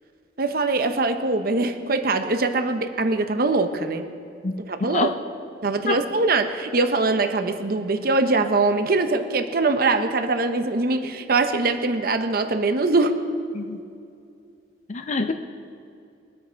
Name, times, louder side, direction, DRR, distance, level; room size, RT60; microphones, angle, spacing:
voice 1, 0.4-4.0 4.7-5.1 5.6-13.1, right 3 dB, 55° right, 8 dB, 0.8 m, -22 dB
voice 2, 14.9-15.3, left 3 dB, 40° left, 7 dB, 0.5 m, -25 dB
22.5 x 8.9 x 4.5 m, 2.4 s
head